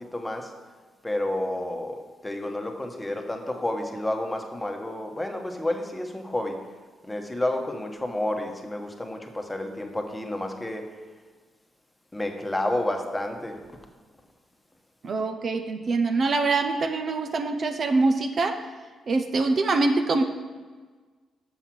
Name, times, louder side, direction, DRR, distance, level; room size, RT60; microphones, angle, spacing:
voice 1, 0.1-0.5 1.0-2.0 2.2-6.6 7.1-10.8 12.1-13.5, left 1 dB, 10° left, 3 dB, 1.2 m, -30 dB
voice 2, 15.0-18.6 19.1-20.2, right 3 dB, 50° right, 6 dB, 0.7 m, -24 dB
7.1 x 5.7 x 6.1 m, 1.4 s
cardioid pair, 70°, 0 cm